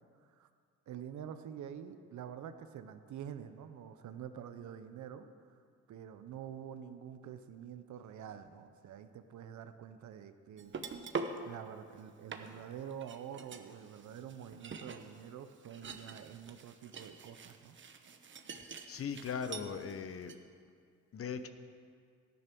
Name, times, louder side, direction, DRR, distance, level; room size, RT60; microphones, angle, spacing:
voice 1, 0.9-5.6 5.9-10.7 11.4-17.8, right 9 dB, 70° right, 9 dB, 0.9 m, -47 dB
sound 1, 10.6-11.4 12.0-12.1 12.3-19.9 20.2-20.4, right 5 dB, 40° right, 1.0 m, -45 dB
voice 2, 18.9-20.3 21.1-21.5, left 6 dB, 50° left, 10 dB, 0.9 m, -39 dB
13.0 x 9.7 x 6.1 m, 2.2 s
cardioid pair, 90°, 30 cm